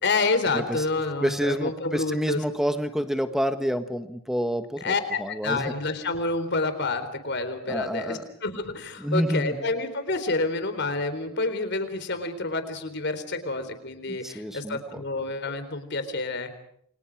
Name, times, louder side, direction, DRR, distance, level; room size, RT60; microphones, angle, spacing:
voice 1, 0.0-2.4 4.8-16.6, left 3 dB, 55° left, 10 dB, 4.0 m, -28 dB
voice 2, 0.5-0.8 1.2-4.9 5.2-5.7 7.7-8.2 9.0-9.7 14.1-15.0, equal, ahead, 8 dB, 1.5 m, -28 dB
29.5 x 25.5 x 4.9 m, 0.69 s
head